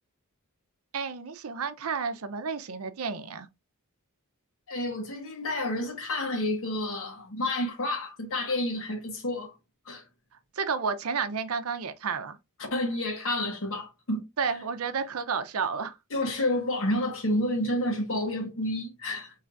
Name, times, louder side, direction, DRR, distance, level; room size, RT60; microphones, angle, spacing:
voice 1, 0.9-3.5 10.6-12.4 14.4-16.0, right 5 dB, 80° right, 0.6 m, -31 dB
voice 2, 4.7-9.5 9.9-10.0 12.6-14.5 16.1-19.3, left 1 dB, 65° left, 1.5 m, -30 dB
4.6 x 3.2 x 2.5 m
head